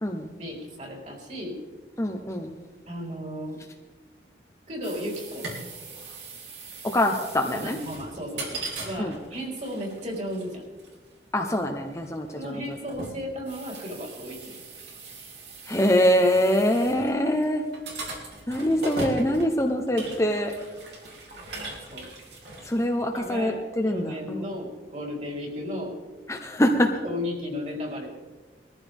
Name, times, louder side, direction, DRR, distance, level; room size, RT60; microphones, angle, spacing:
voice 1, 0.4-1.6 2.9-3.6 4.7-5.5 7.5-10.6 12.3-14.6 21.8-22.1 23.1-23.6 23.9-26.0 27.0-28.1, left 1 dB, 40° right, -1 dB, 3.9 m, -34 dB
voice 2, 2.0-2.5 6.8-7.8 9.0-9.1 11.3-12.8 15.7-17.6 18.5-20.5 22.7-24.5 26.3-26.9, equal, 15° left, 2 dB, 0.9 m, -24 dB
sound 1, 4.8-23.4, right 2 dB, 75° right, 3.3 m, -40 dB
21.0 x 14.5 x 3.6 m, 1.3 s
head